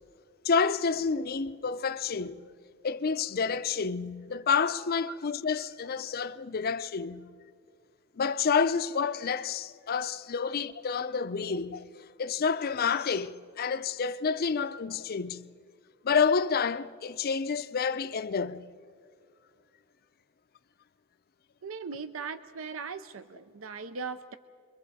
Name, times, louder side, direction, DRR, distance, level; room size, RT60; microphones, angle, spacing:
voice 1, 0.4-2.4 2.8-7.3 8.2-11.8 12.2-15.4 16.0-18.6, left 5 dB, 45° left, 0.5 m, -29 dB
voice 2, 21.6-24.4, right 5 dB, 70° right, 0.6 m, -39 dB
29.0 x 23.0 x 4.1 m
head